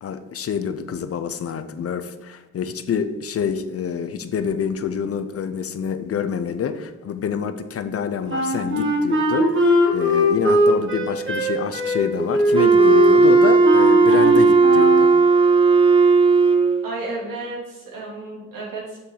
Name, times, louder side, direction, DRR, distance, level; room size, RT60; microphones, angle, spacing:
voice 1, 0.0-15.1, left 7 dB, 45° left, 10 dB, 0.5 m, -27 dB
Wind instrument woodwind instrument, 8.3-15.1, left 1 dB, 40° right, 1.6 m, -20 dB
Wind instrument woodwind instrument 2, 12.5-16.8, right 4 dB, 15° right, 0.5 m, -15 dB
voice 2, 16.8-19.0, right 2 dB, 80° right, -4 dB, 2.9 m, -32 dB
6.8 x 6.7 x 3.8 m, 1.1 s
wide cardioid pair, 165°, 32 cm